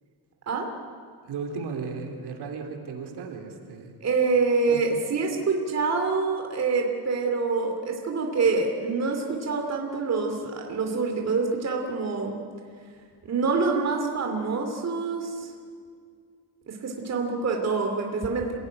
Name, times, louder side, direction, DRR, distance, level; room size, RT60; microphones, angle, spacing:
voice 1, 1.2-4.0 4.7-5.0, right 5 dB, 75° right, 4 dB, 3.3 m, -35 dB
voice 2, 4.0-12.4 13.2-15.5 16.7-18.5, right 4 dB, 40° right, 2 dB, 2.8 m, -26 dB
27.0 x 17.5 x 10.0 m, 2.1 s
cardioid pair, 170°, 41 cm